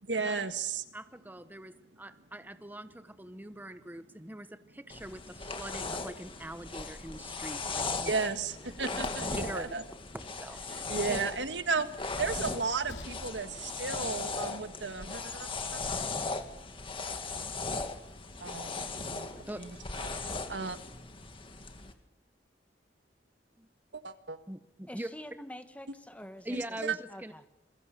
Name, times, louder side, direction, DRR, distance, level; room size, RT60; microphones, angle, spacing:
voice 1, 0.0-0.8 8.0-9.8 10.7-15.8 18.4-19.3 19.6-19.7 20.0-20.1 20.5-20.8 23.9-24.4 26.5-26.9, right 4 dB, 90° right, 9 dB, 1.7 m, -34 dB
voice 2, 0.9-8.1 8.9-9.0 9.3-9.7 10.4-10.6 11.1-11.2 18.4-18.6 19.5-19.6 23.6-23.7 24.5-25.1 26.4-27.5, right 1 dB, 10° right, 10 dB, 0.9 m, -43 dB
sound 1, 4.9-21.9, left 3 dB, 30° left, 2.0 m, -38 dB
Train, 7.6-15.4, left 1 dB, 75° left, 3.7 m, -55 dB
voice 3, 24.9-26.6 26.9-27.4, equal, 10° left, 8 dB, 1.6 m, -46 dB
27.5 x 21.5 x 6.6 m, 0.88 s
head